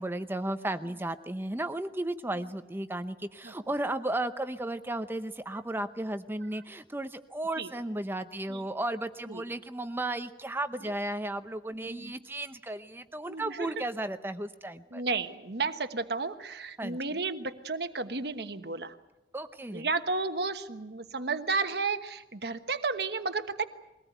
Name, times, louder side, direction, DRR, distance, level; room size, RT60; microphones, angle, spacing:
voice 1, 0.0-15.0 16.8-17.0 19.3-19.9, right 1 dB, 15° right, 10 dB, 0.8 m, -34 dB
voice 2, 11.8-12.1 13.2-13.7 14.9-19.0 19.7-23.7, right 4 dB, 65° right, 9 dB, 1.2 m, -33 dB
22.5 x 18.5 x 9.2 m, 1.0 s
head